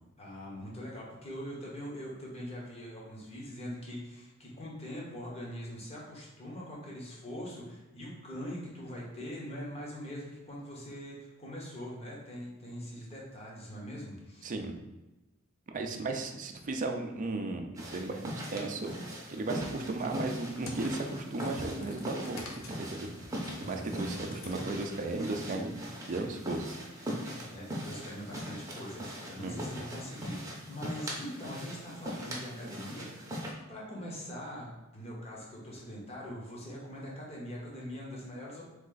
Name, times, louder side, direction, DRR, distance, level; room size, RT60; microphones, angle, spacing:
voice 1, 0.2-14.5 16.1-16.2 23.6-24.2 27.3-33.3 33.7-34.7 34.9-38.7, equal, 30° left, -4 dB, 1.1 m, -42 dB
voice 2, 14.4-14.7 15.7-18.9 19.3-23.1 23.7-26.8 29.4-29.7, right 2 dB, 40° right, 4 dB, 0.4 m, -35 dB
sound 1, 17.8-33.5, equal, 15° right, 0.8 m, -40 dB
sound 2, 20.0-25.1, left 2 dB, 75° left, 0.8 m, -49 dB
3.7 x 3.2 x 3.9 m, 1.0 s
head